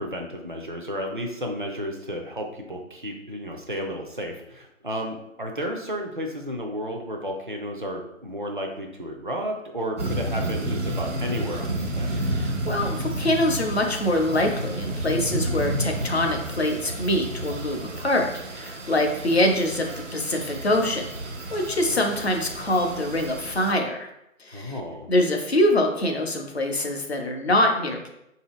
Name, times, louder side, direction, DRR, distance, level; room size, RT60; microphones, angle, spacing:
voice 1, 0.0-12.2 24.5-25.1, equal, 40° right, 1 dB, 0.4 m, -32 dB
sound 1, 10.0-23.7, right 1 dB, 60° right, 0.8 m, -31 dB
voice 2, 12.3-24.1 24.4-24.7 25.1-28.1, left 1 dB, 50° left, 3 dB, 0.6 m, -24 dB
4.2 x 2.7 x 3.0 m, 0.82 s
figure-of-eight pair, 155°, 41 cm